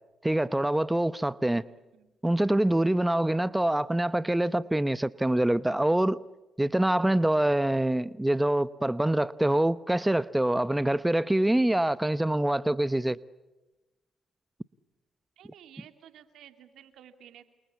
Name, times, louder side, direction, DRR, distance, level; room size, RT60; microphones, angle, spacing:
voice 1, 0.2-1.6 2.2-6.2 6.6-13.2, right 1 dB, 10° right, 15 dB, 0.9 m, -25 dB
voice 2, 1.6-2.1 15.4-17.4, right 10 dB, 75° right, 8 dB, 2.8 m, -53 dB
28.5 x 28.5 x 7.2 m, 1.1 s
supercardioid pair, 55°, 0 cm